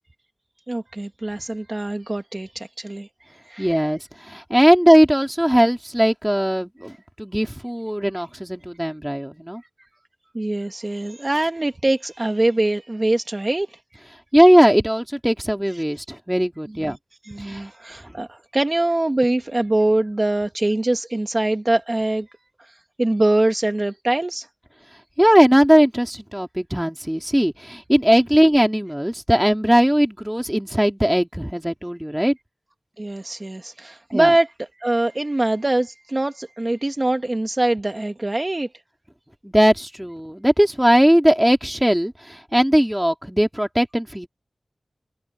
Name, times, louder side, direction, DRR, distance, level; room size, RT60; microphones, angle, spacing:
voice 1, 0.7-3.8 10.3-13.8 15.7-15.8 16.7-17.0 17.2-22.3 22.6-24.5 33.0-34.5 34.8-38.7, right 2 dB, 35° right, 1.3 m, -23 dB
voice 2, 3.6-9.6 14.3-17.0 17.4-17.7 25.2-32.4 34.1-34.3 39.4-44.3, equal, 5° right, 2.5 m, -18 dB
wide cardioid pair, 55°, 0 cm